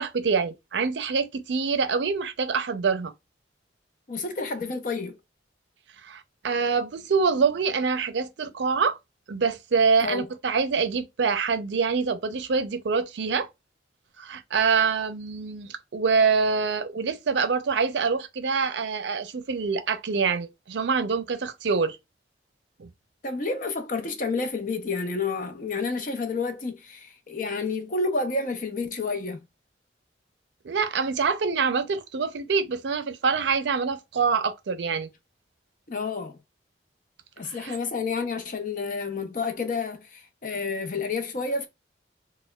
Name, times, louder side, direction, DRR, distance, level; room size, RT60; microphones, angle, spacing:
voice 1, 0.0-3.1 6.0-9.0 9.3-13.5 14.2-22.0 22.8-22.9 30.6-35.1 37.6-37.7, right 5 dB, 75° right, 0.5 m, -25 dB
voice 2, 4.1-5.2 10.0-10.3 23.2-29.4 35.9-36.4 37.4-41.7, left 4 dB, 45° left, 0.6 m, -30 dB
4.2 x 2.1 x 2.3 m
head